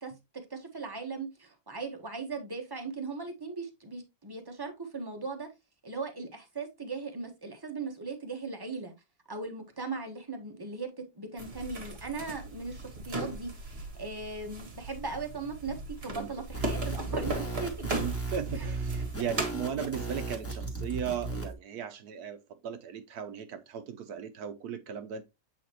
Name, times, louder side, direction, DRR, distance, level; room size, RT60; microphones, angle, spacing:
voice 1, 0.0-5.5 5.8-8.9 9.3-17.9 18.6-19.1, right 4 dB, 15° right, 1.0 m, -38 dB
sound 1, 11.4-19.5, right 2 dB, 35° right, 1.7 m, -38 dB
sound 2, 16.5-21.5, right 3 dB, 10° left, 1.7 m, -36 dB
voice 2, 17.9-22.4 22.6-25.2, right 8 dB, 70° right, 1.1 m, -37 dB
8.1 x 4.3 x 2.9 m
omnidirectional pair, 1.9 m